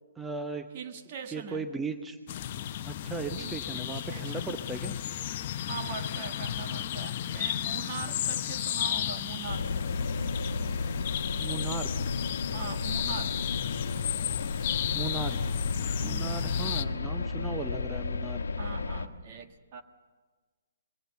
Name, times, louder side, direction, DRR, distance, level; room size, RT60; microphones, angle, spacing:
voice 1, 0.2-0.7 1.3-2.2 2.9-5.0 11.4-11.9 14.9-15.5 16.0-18.4, right 4 dB, 10° right, 6 dB, 1.0 m, -37 dB
voice 2, 0.7-1.7 3.4-4.5 5.6-9.8 12.5-13.4 16.0-16.6 18.6-19.8, right 6 dB, 40° right, 7 dB, 1.5 m, -41 dB
sound 1, 2.3-16.8, left 11 dB, 40° left, 0.8 m, -34 dB
sound 2, 9.5-19.1, left 4 dB, 70° left, 1.3 m, -33 dB
24.5 x 22.0 x 6.9 m, 1.4 s
figure-of-eight pair, 130°, 0 cm